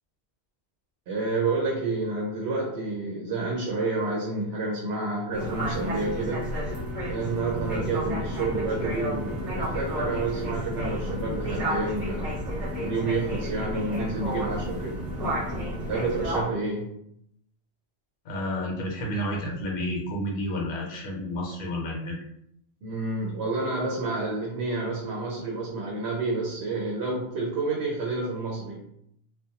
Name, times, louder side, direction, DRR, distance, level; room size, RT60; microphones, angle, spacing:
voice 1, 1.1-6.5 7.1-12.4 12.8-15.0 15.9-17.0 22.8-28.9, right 3 dB, 85° right, -2 dB, 0.9 m, -29 dB
sound 1, 5.3-16.4, equal, 35° right, 0.9 m, -31 dB
voice 2, 18.2-22.2, equal, 60° left, -1 dB, 0.8 m, -30 dB
2.4 x 2.2 x 2.8 m, 0.73 s
omnidirectional pair, 1.1 m